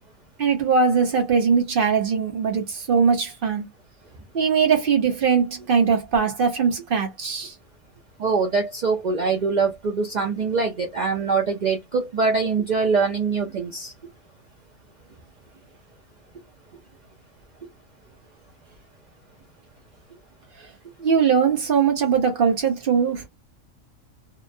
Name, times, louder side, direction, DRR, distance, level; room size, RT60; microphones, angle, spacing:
voice 1, 0.4-3.6 4.3-7.5 21.0-23.3, right 6 dB, 45° right, 1.0 m, -21 dB
voice 2, 8.2-13.9, right 4 dB, 85° right, 0.4 m, -23 dB
2.8 x 2.0 x 2.6 m
omnidirectional pair, 1.4 m